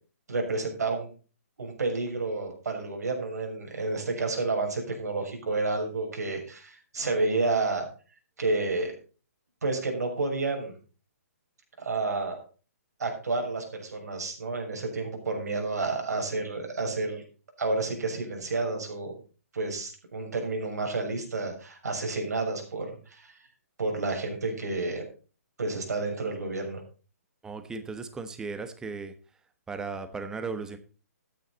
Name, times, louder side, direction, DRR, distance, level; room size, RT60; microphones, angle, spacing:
voice 1, 0.3-1.1 1.6-7.8 8.4-8.9 9.6-10.7 11.8-12.4 13.0-17.2 17.6-19.1 19.5-23.4 23.8-25.0 25.6-26.8, right 3 dB, 80° right, 2 dB, 6.7 m, -30 dB
voice 2, 27.4-29.1 29.7-30.8, right 4 dB, 5° right, 10 dB, 1.1 m, -36 dB
14.0 x 9.3 x 4.1 m, 0.35 s
hypercardioid pair, 160°, 9 cm